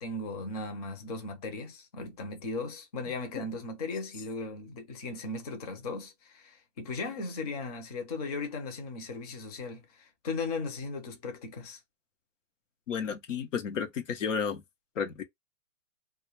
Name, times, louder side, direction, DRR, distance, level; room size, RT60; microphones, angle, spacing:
voice 1, 0.0-11.8, left 3 dB, 35° left, 0.5 m, -37 dB
voice 2, 12.9-14.6 15.0-15.2, left 6 dB, 90° left, 0.8 m, -32 dB
2.2 x 2.1 x 2.9 m
hypercardioid pair, 165°, 37 cm